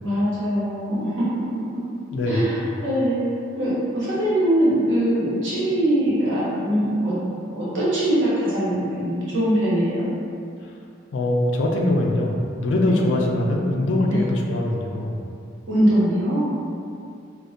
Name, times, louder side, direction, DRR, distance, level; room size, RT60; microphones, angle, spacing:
voice 1, 0.0-1.8 2.2-3.2 3.6-7.1 7.5-10.0 12.8-13.1 14.1-14.3 15.7-16.5, right 1 dB, 85° right, -10 dB, 0.9 m, -22 dB
voice 2, 2.1-2.4 11.1-15.2, left 1 dB, 80° left, 0 dB, 0.3 m, -22 dB
2.2 x 2.1 x 2.6 m, 2.4 s
head